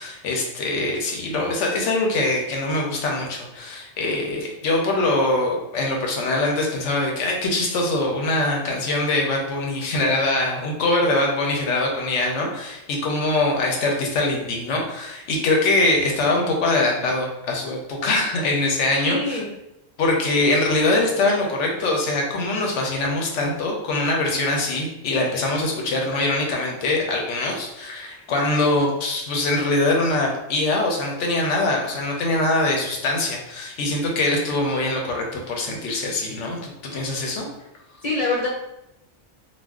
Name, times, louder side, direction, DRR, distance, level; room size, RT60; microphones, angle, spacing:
voice 1, 0.0-19.4 20.0-37.4, left 2 dB, 80° left, 0 dB, 1.0 m, -23 dB
voice 2, 19.0-19.5 38.0-38.5, left 3 dB, 40° left, -6 dB, 0.6 m, -24 dB
2.4 x 2.2 x 3.5 m, 0.87 s
omnidirectional pair, 1.2 m